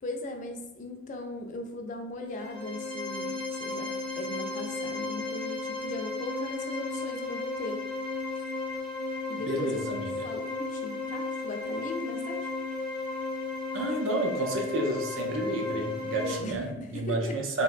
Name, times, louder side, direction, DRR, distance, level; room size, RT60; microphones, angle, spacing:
voice 1, 0.0-7.8 8.3-8.4 9.3-12.5 16.2-17.4, left 2 dB, 40° left, 3 dB, 0.3 m, -39 dB
sound 1, 2.3-16.3, left 3 dB, 40° right, 0.7 m, -34 dB
voice 2, 9.5-10.3 13.7-17.6, right 1 dB, 70° right, 3 dB, 0.4 m, -30 dB
3.5 x 2.1 x 2.4 m, 0.93 s
head